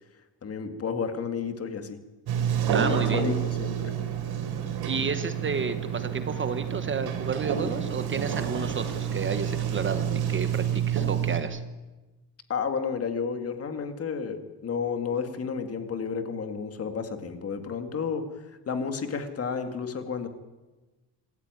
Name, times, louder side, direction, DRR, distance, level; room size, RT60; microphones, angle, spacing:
voice 1, 0.4-2.0 2.6-3.9 12.5-18.3 18.7-20.3, left 6 dB, 35° left, 7 dB, 2.1 m, -31 dB
Sliding door, 2.3-11.4, right 8 dB, 60° right, 3.9 m, -29 dB
voice 2, 2.7-3.3 4.8-11.6, right 5 dB, 30° right, 10 dB, 1.1 m, -31 dB
26.0 x 14.0 x 9.7 m, 1.2 s
cardioid pair, 180°, 42 cm